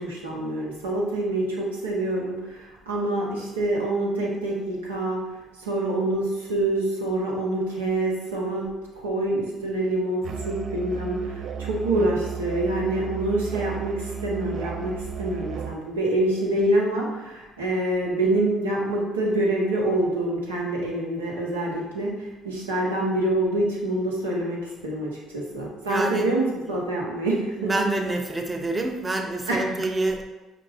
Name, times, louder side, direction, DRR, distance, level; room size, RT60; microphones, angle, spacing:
voice 1, 0.0-5.2 5.6-8.6 9.0-27.7 29.5-29.6, right 1 dB, 90° right, -4 dB, 0.8 m, -26 dB
Musical instrument, 10.2-15.8, right 7 dB, 55° right, 0.3 m, -34 dB
voice 2, 25.9-26.3 27.6-30.2, right 2 dB, 20° right, 3 dB, 0.7 m, -27 dB
4.9 x 2.5 x 3.3 m, 1.1 s
hypercardioid pair, 50°, 0 cm